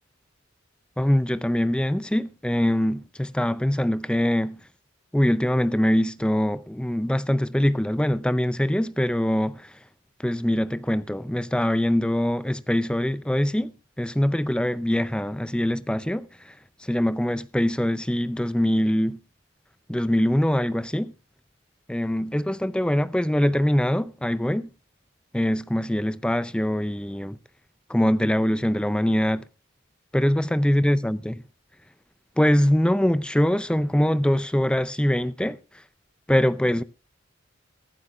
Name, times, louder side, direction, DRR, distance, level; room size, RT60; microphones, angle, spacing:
voice 1, 1.0-4.6 5.1-9.8 10.2-19.2 19.9-21.1 21.9-24.7 25.3-27.4 27.9-29.5 30.1-31.4 32.4-35.8 36.3-36.8, equal, 5° left, 0.4 m, -23 dB
23.0 x 8.0 x 2.4 m
head